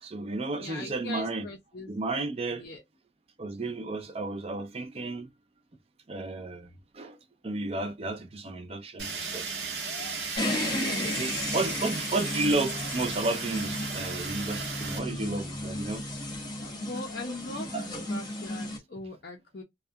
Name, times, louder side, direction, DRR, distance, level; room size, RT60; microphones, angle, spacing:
voice 1, 0.0-1.5 1.9-2.6 3.4-5.3 6.1-7.2 7.4-9.4 11.1-16.0 17.7-17.9, right 2 dB, 30° right, 0.4 m, -32 dB
voice 2, 0.6-1.9 2.5-2.8 10.6-11.5 16.7-19.6, left 3 dB, 50° left, 0.5 m, -41 dB
Fire, 9.0-15.0, right 4 dB, 55° right, 0.8 m, -35 dB
sound 1, 10.4-18.8, left 1 dB, 20° left, 0.9 m, -34 dB
2.4 x 2.1 x 2.6 m
head